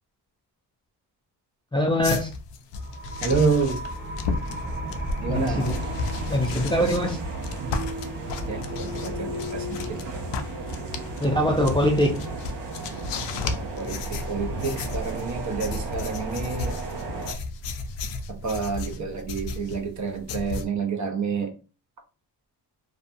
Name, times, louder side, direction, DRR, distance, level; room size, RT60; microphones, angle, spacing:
voice 1, 1.7-2.3 5.3-5.7 6.3-7.2 11.2-12.2, equal, 10° left, 0.4 m, -23 dB
sound 1, 2.0-10.1 10.3-20.7, left 3 dB, 80° left, 0.5 m, -34 dB
sound 2, 2.7-14.1, equal, 25° right, 1.0 m, -37 dB
voice 2, 3.2-3.8 5.2-5.7 6.1-6.2 8.5-10.1 13.4-16.8 18.3-21.6, right 5 dB, 45° right, 0.7 m, -29 dB
sound 3, 5.3-17.3, right 2 dB, 80° right, 0.7 m, -34 dB
2.6 x 2.3 x 2.6 m
cardioid pair, 95°, 42 cm